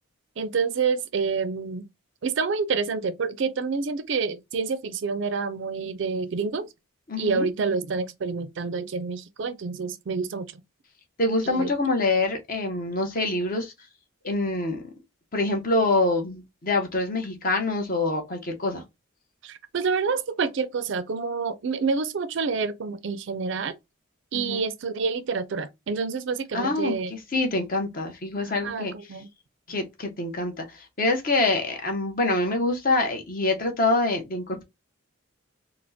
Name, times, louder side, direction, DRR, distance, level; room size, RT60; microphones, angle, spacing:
voice 1, 0.4-1.9 2.2-6.7 7.2-10.6 11.4-11.7 19.4-23.7 24.3-27.1 28.4-29.3, right 5 dB, 60° right, 0.4 m, -28 dB
voice 2, 7.1-7.5 11.2-13.7 14.2-14.8 15.3-18.8 24.3-24.7 26.5-28.9 29.7-34.6, left 2 dB, 40° left, 0.8 m, -25 dB
4.1 x 2.1 x 2.7 m
head